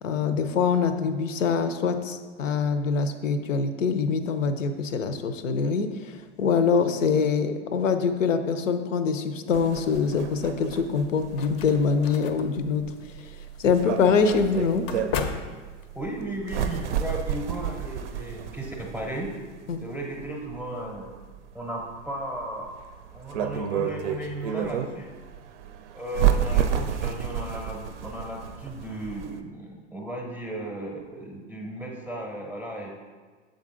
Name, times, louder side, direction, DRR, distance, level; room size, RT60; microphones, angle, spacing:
voice 1, 0.0-12.9 13.6-14.9 19.7-19.8, left 5 dB, 80° left, 9 dB, 0.6 m, -24 dB
sound 1, 9.5-29.4, right 9 dB, 65° right, 0.5 m, -31 dB
sound 2, 10.9-16.2, left 6 dB, 35° left, 0.5 m, -37 dB
voice 2, 15.9-19.3 19.8-21.1 21.5-22.7 23.1-25.1 25.9-32.9, right 1 dB, 5° right, 0 dB, 0.6 m, -35 dB
7.1 x 3.8 x 3.7 m, 1.4 s
hypercardioid pair, 95°, 38 cm